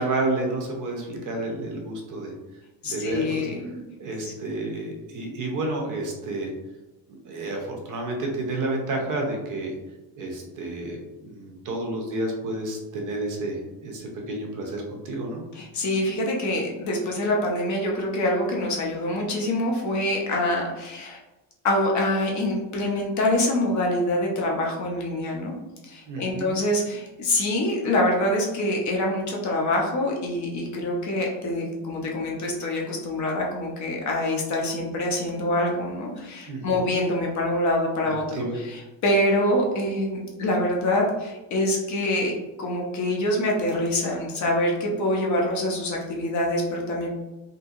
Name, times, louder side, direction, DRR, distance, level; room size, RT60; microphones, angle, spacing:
voice 1, 0.0-2.3 2.9-3.5 4.0-6.5 7.2-9.7 10.2-15.4 26.1-26.5 36.5-36.8 38.1-38.6, right 2 dB, 45° right, 1 dB, 0.6 m, -30 dB
voice 2, 2.8-3.8 4.2-4.3 15.5-21.2 21.6-25.5 25.8-38.2 38.5-42.3 42.6-47.1, left 1 dB, 40° left, -1 dB, 0.5 m, -25 dB
2.8 x 2.6 x 2.4 m, 1.1 s
cardioid pair, 145°, 46 cm